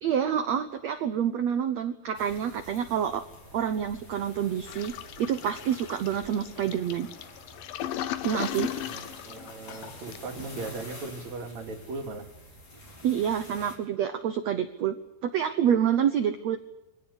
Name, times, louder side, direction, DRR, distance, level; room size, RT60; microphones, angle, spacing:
voice 1, 0.0-3.2 3.5-4.9 5.2-7.1 8.2-8.7 13.0-14.9 15.2-16.6, right 9 dB, 75° right, 9 dB, 1.5 m, -27 dB
sound 1, 2.1-13.8, left 1 dB, 45° left, 5.2 m, -48 dB
Toilet flush, 4.7-10.4, left 12 dB, 70° left, 2.4 m, -37 dB
voice 2, 8.8-12.3, right 3 dB, 50° right, 4 dB, 3.3 m, -38 dB
24.0 x 17.0 x 8.2 m, 0.94 s
omnidirectional pair, 4.6 m